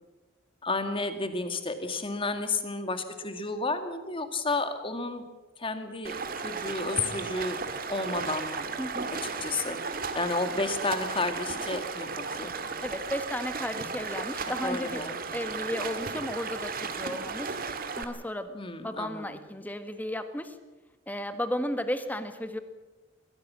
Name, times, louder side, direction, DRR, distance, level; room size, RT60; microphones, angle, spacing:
voice 1, 0.6-5.2 5.6-7.6 7.9-8.7 9.4-9.8 10.1-12.1 12.4-12.7 14.6-15.2 18.5-19.4, left 3 dB, 30° left, 8 dB, 2.0 m, -31 dB
Stream, 6.0-18.0, right 4 dB, 50° right, 1.9 m, -35 dB
voice 2, 8.8-9.1 12.8-15.0 15.3-17.6 17.9-18.5 18.8-20.6 21.1-22.6, left 1 dB, 10° left, 9 dB, 1.5 m, -34 dB
22.5 x 17.0 x 7.4 m, 1.1 s
head